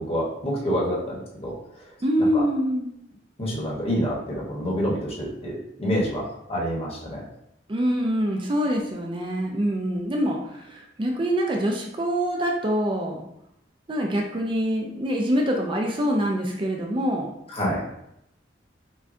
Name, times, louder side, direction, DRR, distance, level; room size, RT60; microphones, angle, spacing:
voice 1, 0.0-1.5 2.3-2.4 3.4-7.2 17.5-17.8, equal, 35° left, -4 dB, 1.1 m, -27 dB
voice 2, 2.0-2.9 7.7-13.2 13.9-17.3, equal, 30° right, 1 dB, 0.4 m, -25 dB
6.1 x 2.2 x 2.6 m, 0.80 s
head